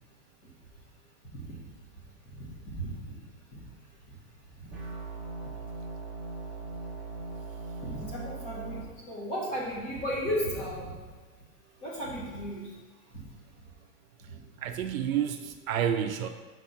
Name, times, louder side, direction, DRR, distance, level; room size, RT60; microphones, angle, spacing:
voice 1, 1.2-1.6 2.3-3.2 3.5-3.6 4.6-4.7 7.8-8.8 9.1-11.0 11.8-12.7 14.2-14.4, equal, 25° left, -5 dB, 1.7 m, -35 dB
sound 1, 4.7-8.8, right 3 dB, 5° right, 0.8 m, -39 dB
voice 2, 14.6-16.3, right 9 dB, 60° right, 7 dB, 0.5 m, -29 dB
5.9 x 4.4 x 5.5 m, 1.4 s
supercardioid pair, 175°, 48 cm